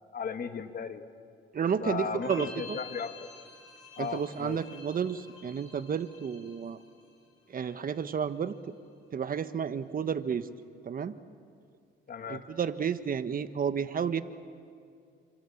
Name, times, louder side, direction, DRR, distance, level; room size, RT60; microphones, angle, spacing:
voice 1, 0.1-1.1 1.8-3.3 4.0-4.6 12.1-12.4, left 6 dB, 50° left, 7 dB, 2.0 m, -36 dB
voice 2, 1.5-2.8 4.0-6.8 7.5-8.5 9.1-10.5 10.8-11.2 12.3-14.2, right 7 dB, 45° right, 11 dB, 1.3 m, -31 dB
sound 1, 2.1-7.2 7.4-8.1, left 4 dB, 80° left, 7.9 m, -49 dB
29.0 x 26.0 x 7.2 m, 2.3 s
cardioid pair, 90°, 20 cm